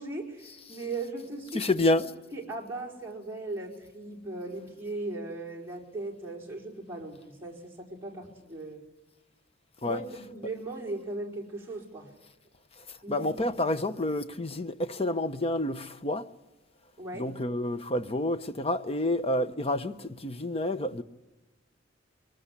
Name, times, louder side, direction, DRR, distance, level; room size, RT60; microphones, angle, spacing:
voice 1, 0.0-1.6 1.9-2.0 2.3-8.8 9.8-12.1 13.0-13.6 17.0-17.3, right 2 dB, 10° right, 4.6 m, -38 dB
voice 2, 1.5-2.0 9.8-10.0 13.1-16.3 17.2-21.0, left 1 dB, 30° left, 0.8 m, -29 dB
23.0 x 19.0 x 9.9 m
head